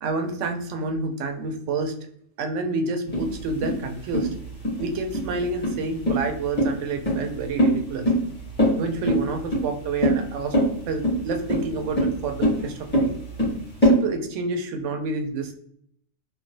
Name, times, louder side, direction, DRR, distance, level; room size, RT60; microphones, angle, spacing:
voice 1, 0.0-1.9 2.4-4.3 4.8-8.1 8.8-10.6 10.9-13.1 13.8-15.5, right 3 dB, 70° right, 5 dB, 0.9 m, -28 dB
sound 1, 3.1-14.0, equal, 10° left, 0.9 m, -23 dB
3.0 x 2.3 x 2.6 m, 0.66 s
omnidirectional pair, 1.3 m